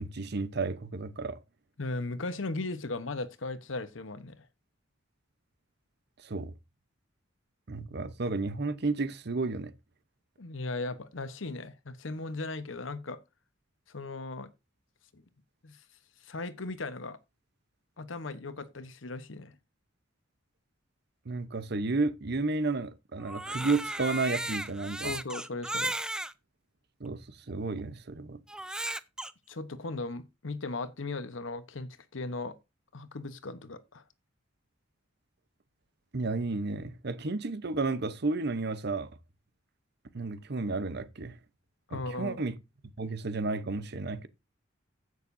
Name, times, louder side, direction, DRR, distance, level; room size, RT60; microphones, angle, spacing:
voice 1, 0.0-1.4 6.2-6.5 7.7-9.7 21.3-25.1 27.0-28.4 36.1-39.1 40.1-41.4 41.9-42.5 43.0-44.3, right 3 dB, 60° right, 0.9 m, -32 dB
voice 2, 1.8-4.5 10.4-13.2 13.9-14.5 15.1-15.2 15.6-15.8 16.2-17.2 18.0-19.6 25.0-26.0 29.5-32.6 32.9-34.0 41.9-42.4, left 2 dB, 85° left, 1.0 m, -37 dB
Crying sobbing, 23.2-26.3 27.1-27.2 28.5-29.3, right 1 dB, 5° right, 0.4 m, -35 dB
15.5 x 6.6 x 2.7 m
head